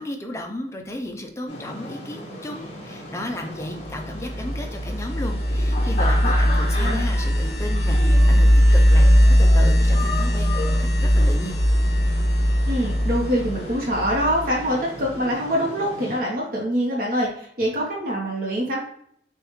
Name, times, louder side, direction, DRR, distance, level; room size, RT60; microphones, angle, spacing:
voice 1, 0.0-11.6, left 1 dB, 15° left, 4 dB, 0.4 m, -34 dB
sound 1, 1.5-16.2, left 1 dB, 35° left, 1.1 m, -35 dB
sound 2, 4.1-14.6, equal, 65° left, 0.7 m, -19 dB
voice 2, 12.7-18.8, equal, 50° right, -2 dB, 0.9 m, -24 dB
6.4 x 2.4 x 3.0 m, 0.68 s
head